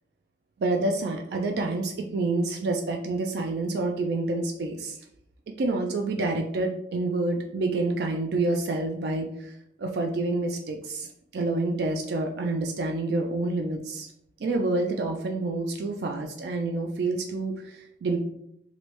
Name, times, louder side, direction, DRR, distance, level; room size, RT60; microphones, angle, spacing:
voice 1, 0.6-5.0 5.6-14.1 14.4-18.2, right 2 dB, 70° right, 2 dB, 0.3 m, -28 dB
3.0 x 2.5 x 3.1 m, 0.76 s
head